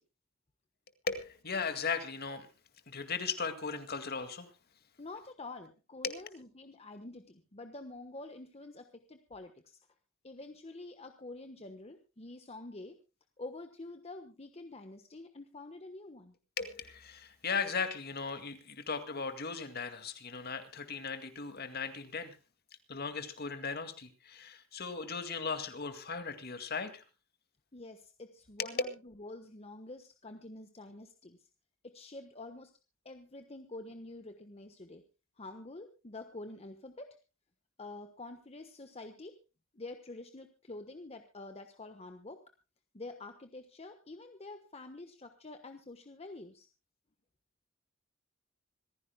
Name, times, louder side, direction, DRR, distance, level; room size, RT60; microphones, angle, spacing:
voice 1, 1.1-2.5 2.9-4.5 6.0-6.2 16.6-22.4 22.9-27.0 28.6-28.7, left 5 dB, 50° left, 9 dB, 2.1 m, -37 dB
voice 2, 5.0-9.8 10.2-13.0 13.4-16.3 27.7-31.5 31.8-32.7 33.0-35.0 35.4-37.2 37.8-39.4 39.7-42.4 42.9-46.7, left 2 dB, 30° left, 7 dB, 1.2 m, -47 dB
26.0 x 15.0 x 2.2 m, 0.30 s
head